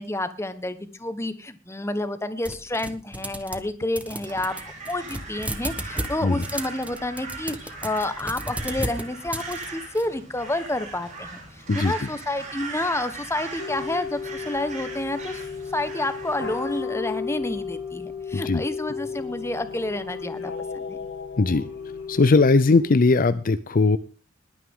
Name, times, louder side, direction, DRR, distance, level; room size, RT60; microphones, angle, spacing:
voice 1, 0.0-4.5 4.9-15.4 15.7-21.0, left 1 dB, 15° left, 11 dB, 1.2 m, -29 dB
sound 1, 2.4-3.7 4.0-10.0, right 1 dB, 5° right, 1.2 m, -34 dB
Crow, 4.1-16.8, right 3 dB, 40° right, 6.8 m, -39 dB
sound 2, 13.6-23.2, left 5 dB, 70° left, 2.9 m, -34 dB
voice 2, 22.1-24.0, left 3 dB, 45° left, 14 dB, 0.5 m, -19 dB
20.5 x 9.3 x 3.7 m, 0.35 s
head